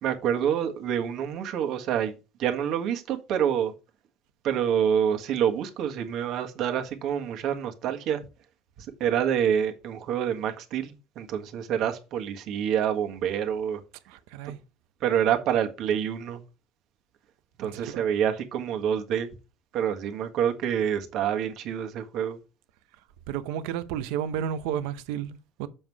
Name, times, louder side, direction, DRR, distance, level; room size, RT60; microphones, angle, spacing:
voice 1, 0.0-2.1 2.4-3.7 4.4-8.2 8.8-13.8 15.0-16.4 17.6-19.3 19.7-22.4, right 9 dB, 60° right, 1.5 m, -27 dB
voice 2, 14.1-14.6 17.6-18.0 23.3-25.7, right 9 dB, 85° right, 0.8 m, -32 dB
7.0 x 5.5 x 4.7 m
cardioid pair, 120°, 0 cm